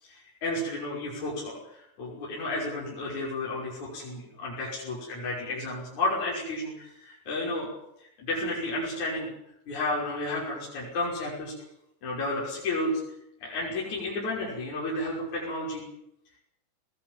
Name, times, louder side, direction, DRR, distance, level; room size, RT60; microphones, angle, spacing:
voice 1, 0.0-7.7 8.2-9.3 9.7-11.5 12.0-13.0 13.4-15.8, left 2 dB, 40° left, -5 dB, 7.1 m, -32 dB
21.0 x 19.0 x 9.0 m, 0.80 s
omnidirectional pair, 5.4 m